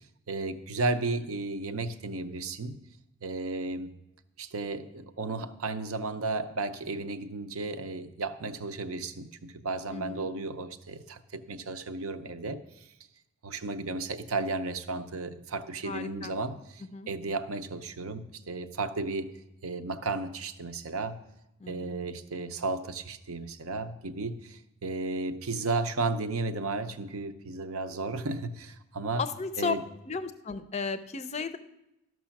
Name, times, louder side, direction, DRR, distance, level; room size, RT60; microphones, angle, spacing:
voice 1, 0.3-2.8 3.2-3.9 4.4-12.6 13.4-19.3 19.6-21.2 21.7-29.2 29.6-29.8, right 3 dB, 80° right, 9 dB, 0.7 m, -34 dB
voice 2, 9.9-10.3 15.8-16.3 16.9-17.1 21.6-22.0 29.2-29.7 30.1-31.6, left 5 dB, 30° left, 11 dB, 0.4 m, -34 dB
12.5 x 6.2 x 5.8 m, 0.90 s
head